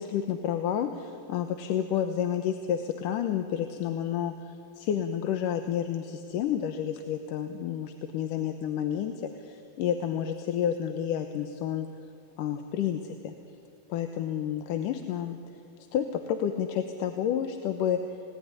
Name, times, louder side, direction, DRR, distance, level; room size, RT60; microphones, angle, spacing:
voice 1, 0.0-11.9 12.4-13.3 13.9-15.4 15.9-18.0, left 9 dB, 75° left, 7 dB, 2.6 m, -30 dB
29.0 x 18.5 x 9.8 m, 2.5 s
omnidirectional pair, 3.9 m